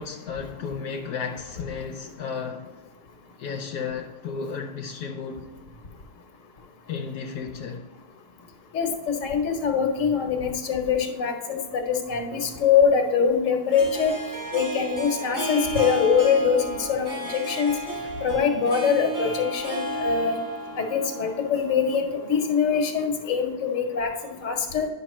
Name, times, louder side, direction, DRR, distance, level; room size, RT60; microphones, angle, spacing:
voice 1, 0.0-2.8 3.4-5.5 6.9-7.9, left 6 dB, 80° left, 1.2 m, -33 dB
voice 2, 8.7-14.1 14.5-17.7 18.2-20.4 20.8-24.9, left 6 dB, 55° left, 1.3 m, -23 dB
Harp, 12.3-22.8, right 1 dB, 15° right, 0.7 m, -33 dB
9.9 x 6.0 x 3.0 m
omnidirectional pair, 1.7 m